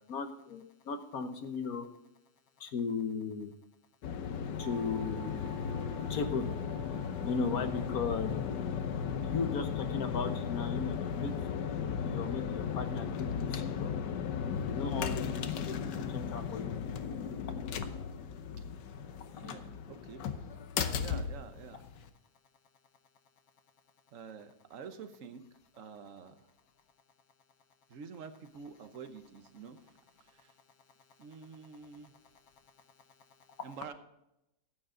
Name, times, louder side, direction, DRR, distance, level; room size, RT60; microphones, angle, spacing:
voice 1, 0.1-1.9 2.6-3.5 4.6-5.5 6.1-6.5 7.2-8.3 9.2-11.3 12.0-13.9 14.7-16.7, left 5 dB, 60° left, 7 dB, 1.4 m, -36 dB
sound 1, 4.0-22.1, left 7 dB, 85° left, 1.5 m, -36 dB
sound 2, 4.6-14.4, right 2 dB, 20° right, 0.5 m, -57 dB
voice 2, 19.3-20.3 20.7-21.8 24.1-25.4 25.7-26.3 27.9-29.9 30.3-30.5 31.2-32.1 33.6-33.9, right 6 dB, 55° right, 9 dB, 1.3 m, -48 dB
14.0 x 9.3 x 3.8 m, 0.86 s
omnidirectional pair, 1.8 m